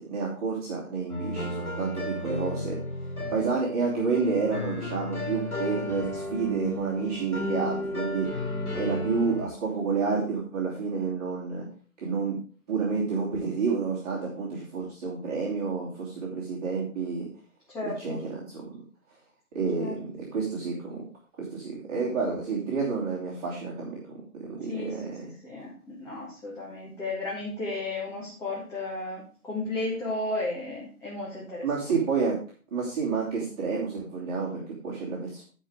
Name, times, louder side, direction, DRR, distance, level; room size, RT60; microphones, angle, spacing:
voice 1, 0.1-2.8 3.3-8.3 8.7-11.6 12.0-12.4 12.7-17.3 18.0-18.6 19.5-21.0 21.5-24.0 24.4-25.3 31.6-32.4 32.7-35.4, right 5 dB, 25° right, -6 dB, 2.9 m, -29 dB
sound 1, 1.1-9.5, left 1 dB, 85° left, 2.7 m, -34 dB
voice 2, 17.7-18.2 19.8-19.9 24.7-25.2 25.4-31.9 32.2-32.3, left 2 dB, 5° left, -6 dB, 1.7 m, -34 dB
14.0 x 5.3 x 4.9 m, 0.41 s
figure-of-eight pair, 140°, 43 cm